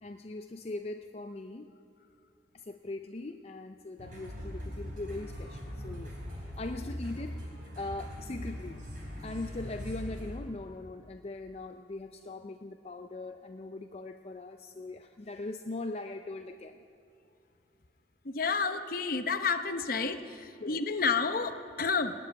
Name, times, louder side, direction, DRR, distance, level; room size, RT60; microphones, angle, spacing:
voice 1, 0.0-1.7 2.5-7.5 7.8-8.8 9.2-16.8, left 2 dB, 35° left, 6 dB, 0.5 m, -40 dB
sound 1, 4.0-10.4, equal, 50° right, 4.2 m, -41 dB
voice 2, 18.2-22.1, left 5 dB, 55° left, 9 dB, 0.9 m, -30 dB
18.5 x 7.8 x 9.6 m, 2.7 s
head